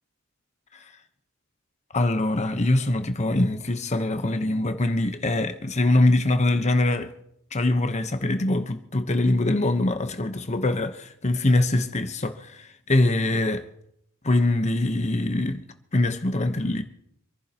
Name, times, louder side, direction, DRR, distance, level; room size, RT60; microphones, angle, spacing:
voice 1, 1.9-7.1 7.5-13.6 14.2-15.7 15.9-16.8, left 2 dB, 30° left, 1.0 m, -23 dB
27.0 x 11.0 x 2.9 m
head